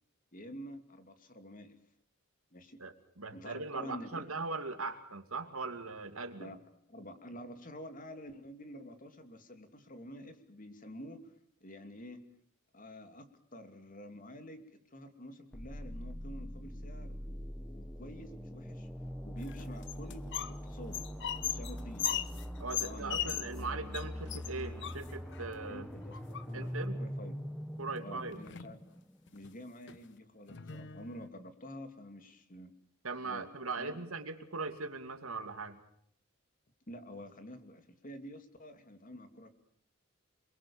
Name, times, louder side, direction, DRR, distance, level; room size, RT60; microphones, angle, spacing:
voice 1, 0.3-1.8 2.5-2.8 3.3-4.3 6.4-6.6 6.9-11.3 11.6-12.2 12.7-13.3 13.5-18.9 19.2-21.0 21.4-22.3 22.8-23.4 25.7-27.4 28.0-28.8 29.3-32.7 33.2-33.5 33.8-33.9 36.9-39.5, equal, 40° left, 8 dB, 2.7 m, -48 dB
voice 2, 2.8-6.5 22.6-25.8 26.5-27.0 27.8-28.4 33.0-35.8, right 3 dB, 85° right, 7 dB, 2.7 m, -40 dB
sound 1, 15.5-29.3, equal, 5° left, 1.1 m, -43 dB
sound 2, 19.4-20.6 20.8-23.6 23.9-24.0 24.3-25.4 26.1-26.8 27.9-28.0 28.3-28.8 29.3-29.5 29.9-30.0 30.5-31.3, left 10 dB, 60° left, 1.0 m, -38 dB
28.0 x 22.0 x 7.2 m, 0.66 s
head